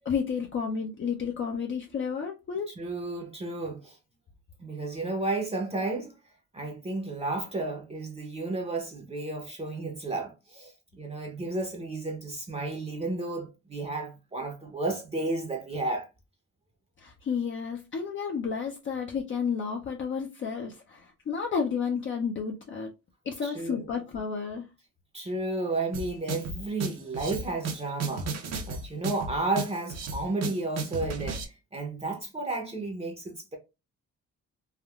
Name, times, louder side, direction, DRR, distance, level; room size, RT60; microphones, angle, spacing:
voice 1, 0.1-2.7 17.0-22.9 23.3-24.7, left 6 dB, 40° left, 0.5 m, -31 dB
voice 2, 2.7-4.0 4.6-6.1 6.5-16.1 23.4-23.9 25.1-28.3 28.7-33.6, right 2 dB, 20° right, 0.7 m, -32 dB
sound 1, 25.9-31.4, right 3 dB, 60° right, 0.7 m, -34 dB
3.5 x 2.2 x 2.3 m
cardioid pair, 90°, 30 cm